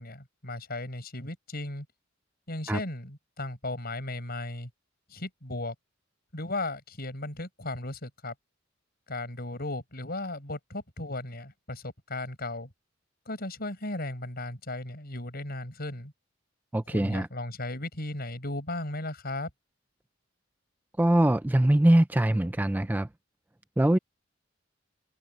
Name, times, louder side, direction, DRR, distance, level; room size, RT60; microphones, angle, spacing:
voice 1, 0.0-1.9 2.5-4.7 5.1-5.8 6.3-8.3 9.1-12.7 13.3-16.1 16.9-19.5, left 2 dB, 50° left, 6.9 m, -36 dB
voice 2, 16.7-17.3 21.0-23.1 23.8-24.0, right 1 dB, 10° right, 0.4 m, -22 dB
head